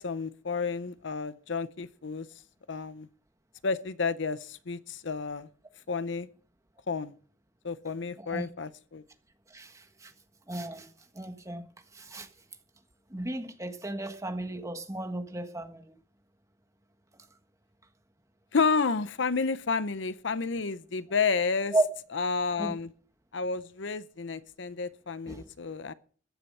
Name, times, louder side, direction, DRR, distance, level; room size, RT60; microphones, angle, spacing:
voice 1, 0.0-2.3 2.7-3.1 3.6-5.5 5.9-6.3 6.9-7.1 7.6-9.0 18.5-21.7 22.1-22.9 23.3-25.9, left 4 dB, 60° left, 0.7 m, -31 dB
voice 2, 9.5-10.1 10.5-10.9 11.1-11.7 11.9-12.3 13.1-15.9 21.7-21.9 22.6-22.7 25.3-25.4, right 2 dB, 15° right, 1.5 m, -33 dB
14.5 x 10.5 x 5.5 m
head